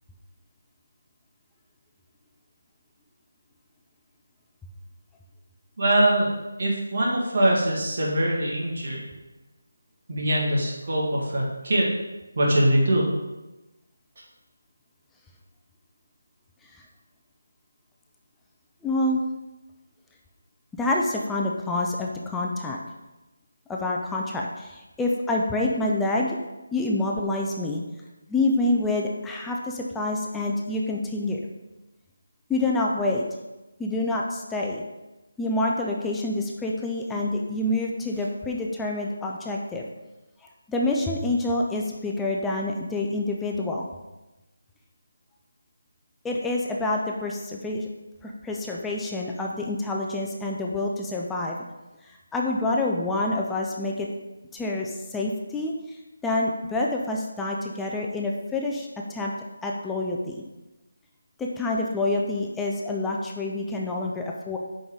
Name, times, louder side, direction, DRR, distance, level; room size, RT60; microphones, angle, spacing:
voice 1, 5.8-6.3 6.6-9.1 10.1-11.9 12.4-13.1, right 1 dB, 50° right, -4 dB, 1.7 m, -22 dB
voice 2, 18.8-19.2 20.8-22.8 23.7-26.4 26.7-27.8 28.3-31.4 32.5-33.2 33.8-34.8 35.4-39.9 40.7-43.9 46.2-47.9 48.2-51.6 52.3-54.1 54.5-56.0 56.2-59.3 59.6-60.4 61.4-64.6, left 2 dB, 5° left, -2 dB, 0.4 m, -27 dB
5.4 x 3.8 x 4.7 m, 1.0 s
figure-of-eight pair, 160°, 0 cm